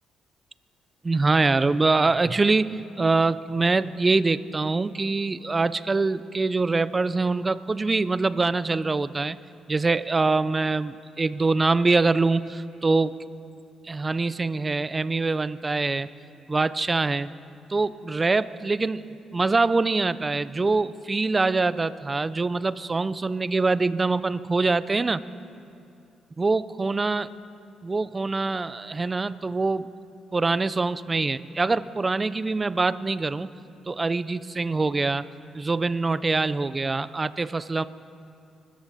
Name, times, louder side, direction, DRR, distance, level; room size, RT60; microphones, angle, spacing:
voice 1, 1.0-9.4 9.7-13.2 13.8-16.1 16.5-17.3 17.7-25.2 26.4-27.3 27.8-29.9 30.3-33.5 33.9-35.3 35.5-37.8, right 3 dB, 25° right, 16 dB, 0.5 m, -24 dB
24.5 x 13.5 x 4.1 m, 2.7 s
cardioid pair, 90°, 0 cm